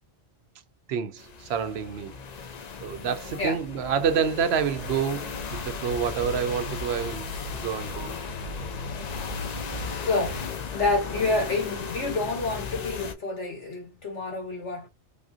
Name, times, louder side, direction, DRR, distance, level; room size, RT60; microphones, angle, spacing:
voice 1, 0.9-2.2 2.8-7.3 7.5-8.2, right 7 dB, 70° right, 0.8 m, -28 dB
sound 1, 1.2-13.1, left 5 dB, 50° left, 0.5 m, -36 dB
sound 2, 4.7-10.5, equal, 50° right, 1.1 m, -39 dB
voice 2, 10.1-14.9, left 3 dB, 80° left, 1.9 m, -28 dB
3.5 x 2.5 x 2.4 m
omnidirectional pair, 1.2 m